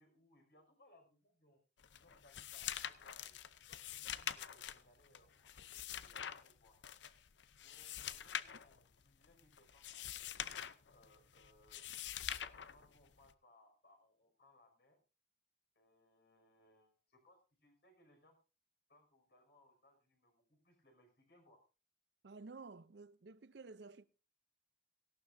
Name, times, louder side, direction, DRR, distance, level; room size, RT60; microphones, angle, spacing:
voice 1, 0.0-1.6 1.9-3.4 3.7-6.8 7.6-10.4 10.9-15.0 15.7-18.4 18.9-21.6, left 1 dB, 65° left, 5.9 m, -69 dB
sound 1, 1.8-13.3, left 10 dB, 85° left, 0.6 m, -46 dB
voice 2, 22.2-24.1, right 3 dB, 75° right, 0.6 m, -53 dB
18.0 x 16.0 x 2.7 m
head